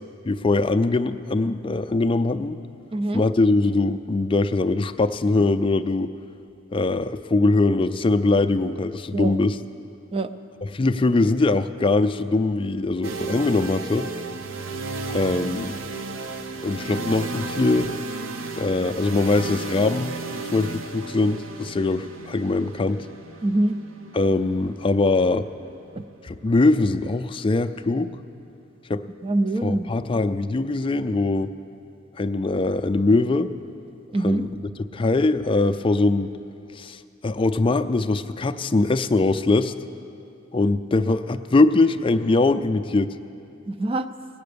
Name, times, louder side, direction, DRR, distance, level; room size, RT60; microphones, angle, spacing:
voice 1, 0.2-2.6 3.1-6.1 6.7-9.6 10.6-14.1 15.1-15.7 16.6-17.9 18.5-23.1 24.1-25.5 26.2-28.1 28.9-29.0 29.6-31.5 32.2-33.5 34.2-34.6 34.9-36.3 36.8-39.7 40.5-43.1, left 2 dB, 25° left, 10 dB, 0.4 m, -22 dB
voice 2, 2.9-3.2 9.1-9.4 10.1-10.3 23.4-23.8 26.0-26.1 29.2-29.9 34.1-34.4 43.7-44.1, right 2 dB, 30° right, 11 dB, 0.4 m, -24 dB
sound 1, 13.0-26.9, right 3 dB, 75° right, 0.7 m, -34 dB
18.5 x 8.7 x 6.8 m, 2.6 s
head